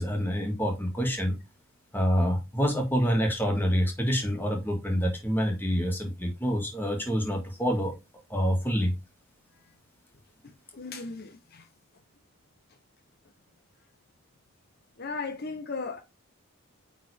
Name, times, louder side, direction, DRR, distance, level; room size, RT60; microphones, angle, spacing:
voice 1, 0.0-1.4 1.9-7.9 8.3-8.9, equal, 10° left, 1.8 m, -27 dB
voice 2, 10.4-11.7 15.0-16.0, left 4 dB, 45° left, 0.7 m, -37 dB
8.9 x 3.8 x 3.4 m
head